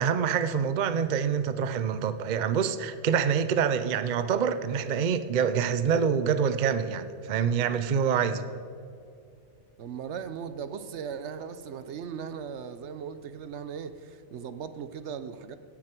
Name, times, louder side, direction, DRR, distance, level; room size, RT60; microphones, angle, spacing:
voice 1, 0.0-8.5, right 7 dB, 50° right, 12 dB, 0.6 m, -26 dB
voice 2, 9.8-15.6, right 7 dB, 75° right, 12 dB, 1.0 m, -38 dB
16.5 x 9.8 x 4.5 m, 2.4 s
omnidirectional pair, 1.2 m